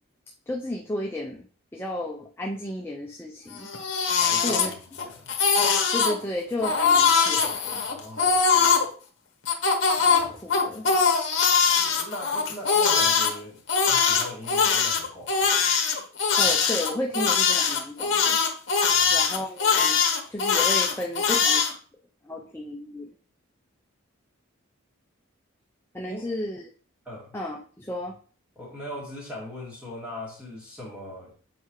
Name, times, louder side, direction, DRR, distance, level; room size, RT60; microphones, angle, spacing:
voice 1, 0.5-1.5 1.7-3.7 4.4-4.7 5.9-7.8 10.1-10.9 16.4-18.4 19.1-20.0 20.3-21.6 22.2-23.1 25.9-26.7 27.3-28.2, left 1 dB, 10° left, 0 dB, 0.5 m, -33 dB
Crying sobbing, 3.6-5.0 5.3-6.1 6.6-8.8 9.4-13.3 13.7-21.7, left 6 dB, 55° left, 1.2 m, -22 dB
voice 2, 4.2-5.3 7.8-8.8 11.6-15.3 18.9-19.3 26.1-26.3 27.0-27.3 28.6-31.3, left 1 dB, 5° right, -5 dB, 2.4 m, -40 dB
7.8 x 4.7 x 3.1 m, 0.42 s
head